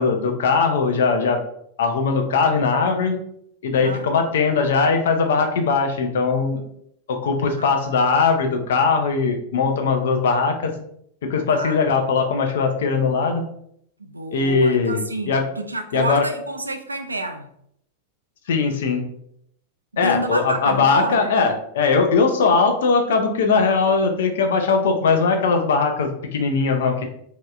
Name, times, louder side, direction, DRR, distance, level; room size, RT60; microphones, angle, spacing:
voice 1, 0.0-1.4 1.8-3.2 3.6-6.6 7.1-10.7 11.2-13.4 14.3-15.4 15.9-16.2 18.5-19.0 20.0-27.0, left 4 dB, 60° left, 4 dB, 0.5 m, -20 dB
voice 2, 3.7-4.1 7.6-7.9 11.5-11.8 14.0-17.5 19.9-21.4, right 2 dB, 80° right, 6 dB, 0.3 m, -29 dB
3.1 x 2.8 x 2.3 m, 0.71 s
figure-of-eight pair, 90°, 0 cm